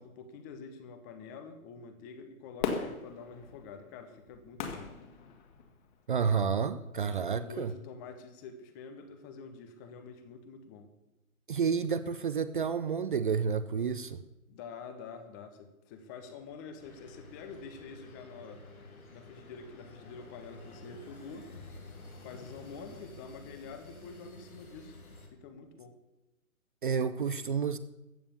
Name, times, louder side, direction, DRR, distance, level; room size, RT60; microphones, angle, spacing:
voice 1, 0.0-4.9 7.0-10.9 14.5-18.6 19.1-21.5 22.2-25.0 25.3-25.9, left 5 dB, 15° left, 0.8 m, -47 dB
Fireworks, 2.6-5.9 6.5-6.6, left 6 dB, 35° left, 1.9 m, -38 dB
voice 2, 6.1-7.7 11.5-14.2 26.8-27.8, right 6 dB, 35° right, 0.6 m, -30 dB
sound 1, 16.1-23.0, left 2 dB, 65° left, 3.2 m, -53 dB
sound 2, 16.8-25.3, left 2 dB, 85° left, 3.5 m, -53 dB
15.0 x 8.7 x 6.9 m
figure-of-eight pair, 140°, 42 cm